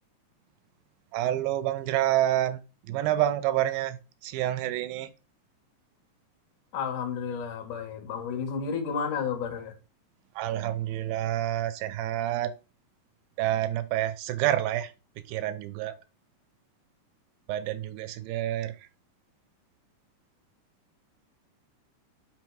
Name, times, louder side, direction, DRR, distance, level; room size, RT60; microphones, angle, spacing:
voice 1, 1.1-2.6 2.9-4.0 4.2-5.1 10.4-12.5 13.4-14.9 15.3-15.9 17.5-18.7, right 13 dB, 85° right, 2.4 m, -28 dB
voice 2, 6.7-9.7, left 6 dB, 65° left, 2.7 m, -32 dB
5.7 x 4.4 x 4.7 m
omnidirectional pair, 4.1 m